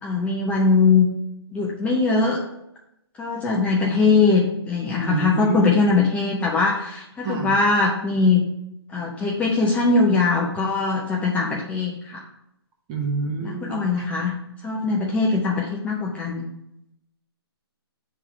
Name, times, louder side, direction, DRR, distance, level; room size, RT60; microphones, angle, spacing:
voice 1, 0.0-1.1 1.5-2.4 3.2-8.5 8.9-12.2 13.4-14.3 14.6-16.5, left 4 dB, 10° left, -3 dB, 0.6 m, -21 dB
voice 2, 5.0-5.8 7.2-7.5 12.9-14.1, right 4 dB, 25° right, 1 dB, 1.1 m, -28 dB
7.0 x 3.5 x 4.7 m, 0.81 s
hypercardioid pair, 150°, 14 cm